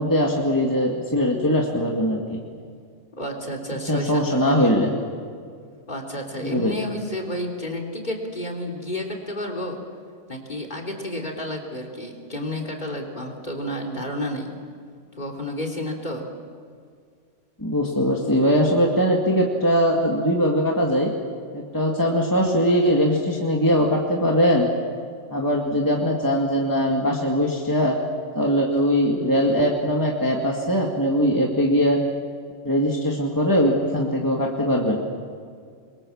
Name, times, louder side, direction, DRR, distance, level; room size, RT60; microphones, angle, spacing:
voice 1, 0.0-2.4 3.9-4.9 6.4-6.7 17.6-21.1 21.5-24.7 25.3-28.0 28.4-32.0 32.6-35.0, equal, 15° left, -1 dB, 2.1 m, -21 dB
voice 2, 3.2-4.7 5.9-9.8 10.3-14.5 15.1-16.3, left 1 dB, 35° left, 3 dB, 3.6 m, -31 dB
27.0 x 23.0 x 7.2 m, 2.1 s
omnidirectional pair, 1.3 m